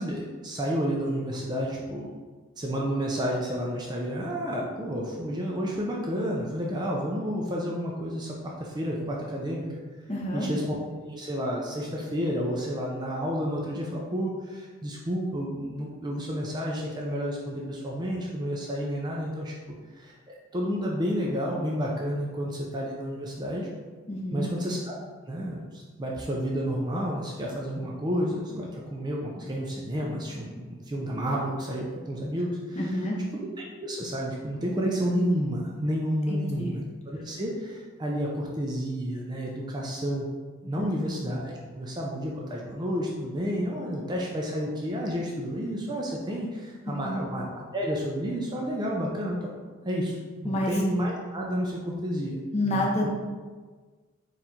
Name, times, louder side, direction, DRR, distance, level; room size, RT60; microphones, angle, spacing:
voice 1, 0.0-2.1 2.6-9.8 10.3-10.8 11.0-19.5 19.9-23.7 24.3-25.0 25.3-33.0 33.3-33.5 33.8-40.3 40.6-49.5 49.8-50.2 50.4-53.1, equal, 20° right, -2 dB, 0.4 m, -30 dB
voice 2, 10.1-10.5 24.1-24.5 32.8-33.2 36.3-36.7 40.8-41.1 46.9-47.2 50.4-50.8 52.5-53.1, left 1 dB, 30° left, -3 dB, 0.8 m, -29 dB
4.3 x 2.5 x 4.1 m, 1.4 s
head